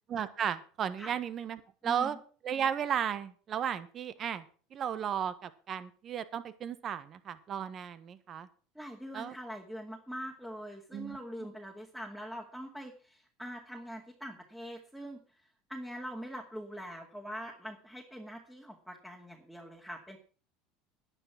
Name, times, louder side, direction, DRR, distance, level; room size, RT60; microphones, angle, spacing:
voice 1, 0.1-2.2 2.4-4.4 4.7-8.5 9.1-9.4 10.9-11.5, right 8 dB, 40° right, 13 dB, 1.5 m, -34 dB
voice 2, 1.8-2.2 8.7-15.2 15.7-20.2, equal, 5° right, 1 dB, 2.4 m, -43 dB
11.0 x 10.0 x 6.0 m, 0.41 s
hypercardioid pair, 90°, 0 cm